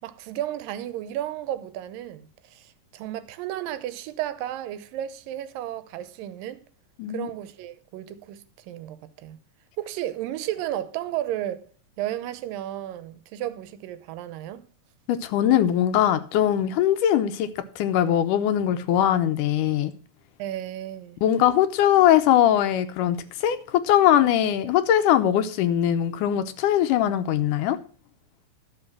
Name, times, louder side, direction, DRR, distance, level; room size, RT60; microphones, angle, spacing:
voice 1, 0.0-6.6 7.1-9.4 9.8-11.6 12.0-14.6 20.4-21.2, right 12 dB, 85° right, 2.5 m, -33 dB
voice 2, 15.1-17.5 17.8-19.9 21.2-23.6 23.8-27.8, left 11 dB, 75° left, 2.2 m, -21 dB
12.0 x 6.6 x 5.9 m
omnidirectional pair, 3.9 m